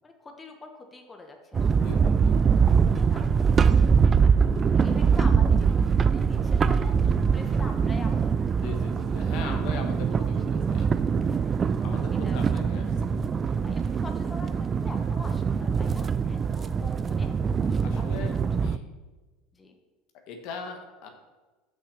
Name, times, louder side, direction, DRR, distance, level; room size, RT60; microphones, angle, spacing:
voice 1, 0.0-2.1 2.9-3.2 4.2-8.7 9.5-9.7 10.5-10.8 11.2-11.6 12.2-12.4 13.6-18.5 19.5-19.8, left 2 dB, 20° left, 4 dB, 1.2 m, -45 dB
sound 1, 1.5-18.8, right 6 dB, 30° right, 0.4 m, -23 dB
voice 2, 1.7-2.3 8.6-10.9 11.8-13.1 17.8-18.3 18.6-18.8 20.3-21.1, left 5 dB, 65° left, 4 dB, 1.4 m, -39 dB
6.2 x 5.6 x 6.7 m, 1.2 s
hypercardioid pair, 85°, 0 cm